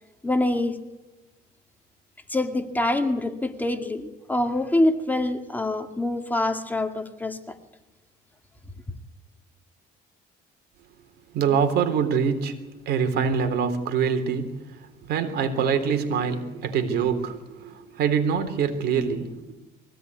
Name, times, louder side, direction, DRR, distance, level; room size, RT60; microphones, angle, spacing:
voice 1, 0.2-0.8 2.3-7.5, left 1 dB, 10° left, 2.2 m, -25 dB
voice 2, 11.3-12.6 12.9-14.6 15.1-19.5, right 6 dB, 75° right, 3.6 m, -24 dB
23.5 x 17.0 x 9.5 m
cardioid pair, 110°, 17 cm